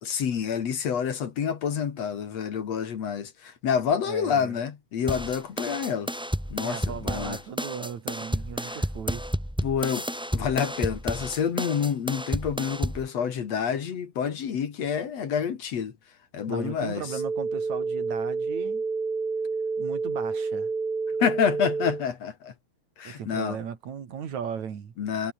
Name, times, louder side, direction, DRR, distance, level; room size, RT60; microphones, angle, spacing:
voice 1, 0.0-6.1 6.5-7.4 8.6-8.8 9.6-15.9 16.3-17.1 21.2-22.5 23.0-23.6 25.0-25.3, left 7 dB, 60° left, 3.1 m, -28 dB
voice 2, 4.1-4.6 6.6-9.3 16.5-18.8 19.8-20.7 23.1-24.9, right 7 dB, 65° right, 3.7 m, -36 dB
sound 1, 5.1-13.1, equal, ahead, 4.4 m, -31 dB
sound 2, 17.1-22.0, right 4 dB, 30° right, 3.1 m, -29 dB
omnidirectional pair, 3.5 m